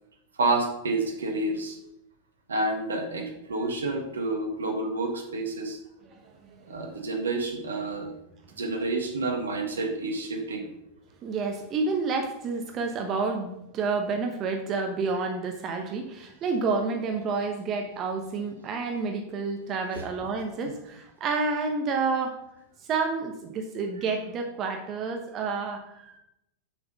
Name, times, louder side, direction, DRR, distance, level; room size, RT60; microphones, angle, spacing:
voice 1, 0.4-1.8 2.5-5.8 6.7-8.1 8.6-10.7 19.9-20.0, right 2 dB, 70° right, 3 dB, 1.6 m, -29 dB
voice 2, 6.1-6.9 11.2-22.4 22.9-26.2, right 4 dB, 30° right, 4 dB, 1.0 m, -29 dB
7.2 x 6.3 x 5.4 m, 0.83 s
figure-of-eight pair, 90°, 0 cm